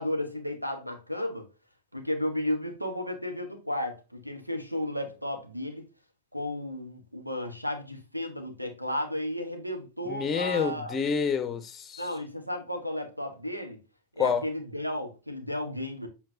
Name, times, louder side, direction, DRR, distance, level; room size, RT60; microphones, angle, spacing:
voice 1, 0.0-1.5 1.9-5.9 6.3-11.0 12.0-13.8 14.1-16.1, left 1 dB, 90° right, 1.4 m, -33 dB
voice 2, 10.1-12.0 14.2-14.4, left 6 dB, 20° left, 0.8 m, -28 dB
7.8 x 4.5 x 2.8 m
figure-of-eight pair, 90°, 0 cm